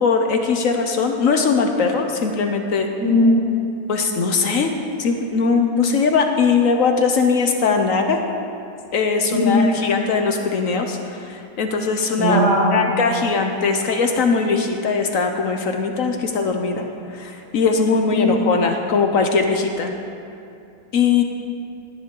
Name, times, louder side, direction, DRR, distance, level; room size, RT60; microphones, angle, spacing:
voice 1, 0.0-2.9 3.9-4.7 5.0-8.2 8.9-12.4 12.7-16.8 17.1-19.9 20.9-21.2, left 5 dB, 60° left, 4 dB, 1.1 m, -20 dB
voice 2, 3.0-3.4 9.3-9.6 12.2-12.7 18.1-18.4, left 1 dB, 80° right, -7 dB, 3.8 m, -17 dB
17.0 x 10.5 x 3.8 m, 2.6 s
omnidirectional pair, 1.8 m